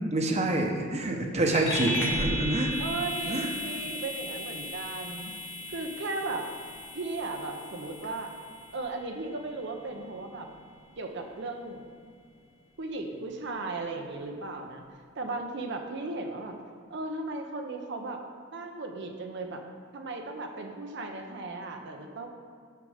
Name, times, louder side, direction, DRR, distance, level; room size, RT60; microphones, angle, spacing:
voice 1, 0.0-2.7 3.2-3.5, right 2 dB, 35° right, 2 dB, 1.0 m, -27 dB
sound 1, 1.5-11.4, equal, 70° left, 1.2 m, -37 dB
sound 2, 2.7-8.9, left 5 dB, 25° left, 0.8 m, -47 dB
voice 2, 2.8-5.3 5.7-6.5 6.9-8.3 8.7-10.5 11.0-11.8 12.8-14.8 15.1-16.6 16.9-19.6 19.9-22.3, right 3 dB, 60° right, 3 dB, 0.8 m, -36 dB
6.8 x 6.6 x 5.0 m, 2.1 s
head